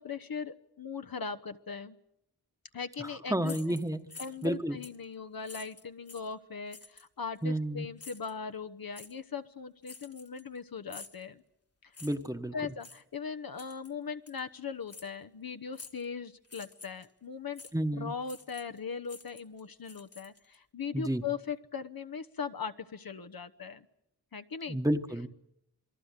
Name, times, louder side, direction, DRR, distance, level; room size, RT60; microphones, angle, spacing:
voice 1, 0.0-2.0 2.7-3.8 4.2-11.4 11.8-11.9 12.5-17.6 17.9-23.9 24.3-24.8, left 6 dB, 65° left, 9 dB, 1.0 m, -39 dB
voice 2, 3.0-4.0 4.4-4.8 7.4-7.9 12.0-12.5 17.7-18.1 20.9-21.2 24.7-25.3, right 1 dB, 10° right, 8 dB, 1.3 m, -31 dB
sound 1, 3.4-4.5 4.8-5.0 5.4-6.3 6.7-7.1 8.0-8.3 8.9-9.1 9.8-10.6 10.9-11.2 11.9-12.3 12.8-13.0 13.6-13.9 14.3-14.4 14.9-15.1 15.7-16.1 16.4-17.1 17.6-17.7 18.2-18.8 19.0-20.6, left 4 dB, 40° left, 1.6 m, -49 dB
27.5 x 21.0 x 8.2 m, 0.80 s
wide cardioid pair, 100°, 38 cm